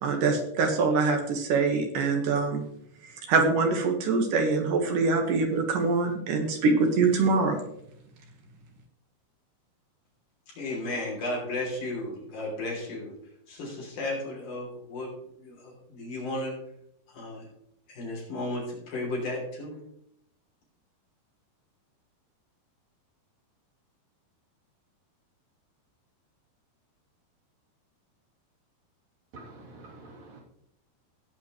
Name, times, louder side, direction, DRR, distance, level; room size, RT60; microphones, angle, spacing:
voice 1, 0.0-2.6 3.3-7.6, right 4 dB, 65° right, 3 dB, 2.8 m, -24 dB
voice 2, 10.5-13.1 13.5-15.1 15.4-16.6 17.1-17.5 17.9-19.8, left 1 dB, 55° left, -3 dB, 4.4 m, -34 dB
voice 3, 29.3-30.4, right 2 dB, 50° right, -3 dB, 3.9 m, -47 dB
16.5 x 8.6 x 3.1 m, 0.74 s
omnidirectional pair, 4.4 m